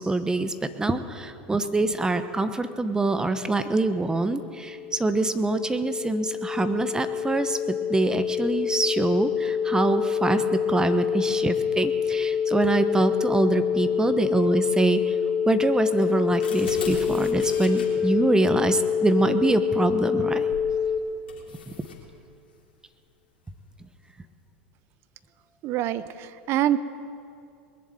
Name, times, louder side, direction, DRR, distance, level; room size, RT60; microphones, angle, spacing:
voice 1, 0.0-15.2 15.5-20.5 21.8-21.9, right 2 dB, 10° right, 10 dB, 1.0 m, -25 dB
sound 1, 4.0-21.0, left 7 dB, 55° left, 1.4 m, -26 dB
sound 2, 16.0-17.9 20.5-20.7 21.3-22.0, left 4 dB, 85° left, 3.1 m, -35 dB
voice 2, 25.6-26.8, right 12 dB, 50° right, 15 dB, 0.7 m, -25 dB
21.0 x 7.5 x 9.1 m, 2.5 s
hypercardioid pair, 90°, 6 cm